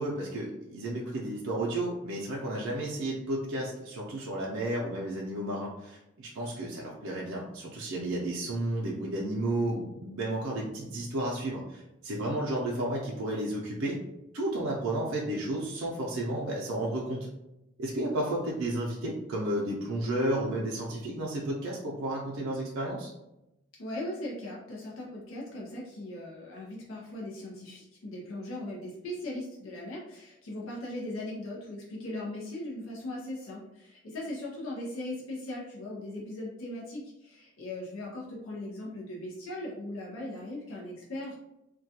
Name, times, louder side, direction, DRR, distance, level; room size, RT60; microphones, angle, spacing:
voice 1, 0.0-14.0 14.3-17.2 17.8-23.1, right 1 dB, 75° right, -4 dB, 0.5 m, -32 dB
voice 2, 23.8-41.4, left 1 dB, 90° left, -3 dB, 0.6 m, -39 dB
2.2 x 2.2 x 2.7 m, 0.90 s
head